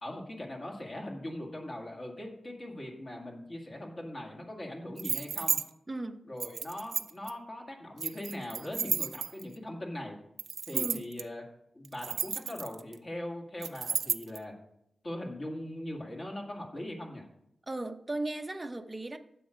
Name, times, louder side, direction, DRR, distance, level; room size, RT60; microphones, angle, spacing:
voice 1, 0.0-5.6 6.2-10.2 10.7-11.4 11.7-14.5 15.0-17.3, left 1 dB, 35° left, 0 dB, 2.2 m, -40 dB
sound 1, 5.0-5.6 6.4-7.3 8.0-9.5 10.4-11.2 11.8-12.9 13.6-14.4, right 6 dB, 80° right, 0.5 m, -32 dB
voice 2, 5.9-6.2 10.7-11.1 17.7-19.2, right 2 dB, 20° right, 6 dB, 0.8 m, -36 dB
12.5 x 7.8 x 5.1 m, 0.75 s
wide cardioid pair, 145°, 0 cm